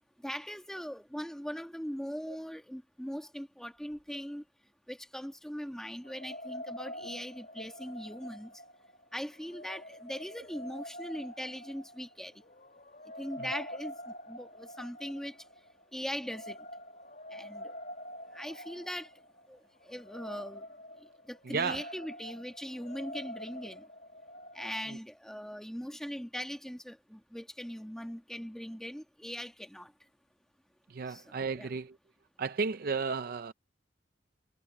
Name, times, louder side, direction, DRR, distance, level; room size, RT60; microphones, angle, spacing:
voice 1, 0.2-4.4 4.9-8.5 9.1-12.3 13.2-15.4 15.9-16.6 17.3-17.8 18.3-19.1 19.5-19.6 19.8-20.6 21.3-23.8 24.5-29.9 31.1-31.7, equal, 5° left, 1.3 m, -40 dB
sound 1, 6.0-25.0, equal, 50° left, 2.7 m, -46 dB
voice 2, 21.4-21.9 24.9-25.0 30.9-32.0 32.4-33.5, right 5 dB, 55° right, 0.5 m, -33 dB
head